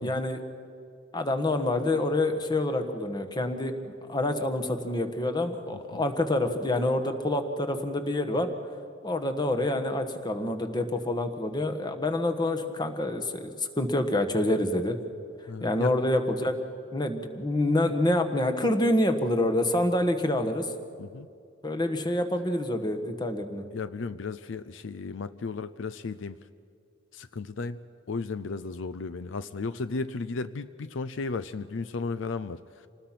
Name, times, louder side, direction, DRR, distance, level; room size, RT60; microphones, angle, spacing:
voice 1, 0.0-0.4 1.1-3.7 4.1-8.5 9.0-15.0 15.6-16.5 16.9-20.7 21.6-23.6, left 1 dB, 20° left, 6 dB, 1.3 m, -27 dB
voice 2, 15.5-15.9 21.0-21.3 23.7-26.4 27.1-27.8 28.1-32.9, left 4 dB, 70° left, 14 dB, 0.5 m, -34 dB
27.0 x 19.5 x 5.9 m, 2.4 s
head